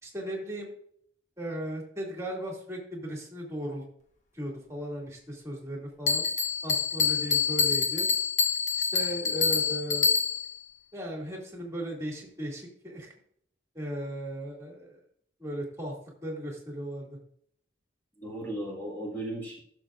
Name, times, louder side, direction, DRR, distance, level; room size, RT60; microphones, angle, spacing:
voice 1, 0.0-0.7 1.4-3.8 4.3-6.2 6.6-8.1 8.8-10.1 10.9-13.1 13.7-15.0 15.4-15.9 16.2-17.2, right 1 dB, 15° right, -1 dB, 2.4 m, -36 dB
Bell, 6.1-10.6, left 5 dB, 45° left, 1.2 m, -26 dB
voice 2, 18.2-19.6, right 1 dB, 10° left, -5 dB, 1.8 m, -36 dB
15.5 x 6.9 x 2.5 m, 0.65 s
head